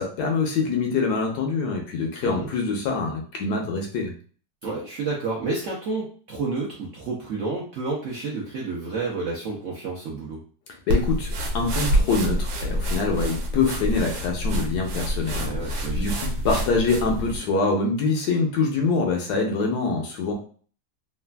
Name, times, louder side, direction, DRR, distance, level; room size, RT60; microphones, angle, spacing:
voice 1, 0.0-4.1 10.9-20.3, left 4 dB, 70° left, 1 dB, 1.1 m, -25 dB
voice 2, 4.6-10.4 15.4-16.1, right 3 dB, 65° right, -4 dB, 0.7 m, -30 dB
sound 1, 10.9-17.4, equal, 90° right, 1.4 m, -27 dB
3.3 x 2.3 x 2.2 m, 0.43 s
omnidirectional pair, 1.9 m